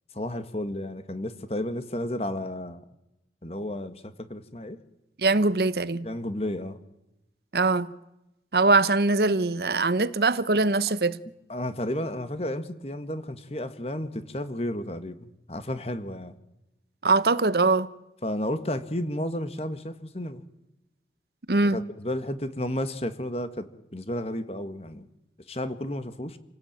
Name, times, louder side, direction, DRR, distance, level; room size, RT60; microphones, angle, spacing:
voice 1, 0.1-2.8 3.4-4.8 6.0-6.8 11.5-16.4 18.2-20.4 21.6-25.0 25.5-26.4, left 1 dB, 35° left, 1.8 m, -32 dB
voice 2, 5.2-6.1 7.5-7.9 8.5-11.2 17.0-17.9 21.5-21.8, right 3 dB, 65° right, 0.9 m, -22 dB
28.0 x 17.5 x 9.0 m
head